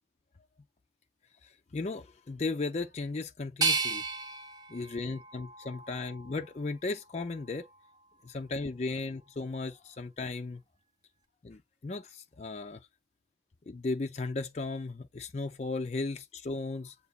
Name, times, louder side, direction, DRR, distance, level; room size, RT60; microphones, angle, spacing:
voice 1, 1.7-4.0 4.7-7.6 8.2-10.6 11.4-12.8 13.7-16.9, left 3 dB, 35° left, 0.4 m, -36 dB
sound 1, 3.6-6.5 7.1-7.9, right 4 dB, 20° right, 0.7 m, -34 dB
8.1 x 2.8 x 2.3 m
head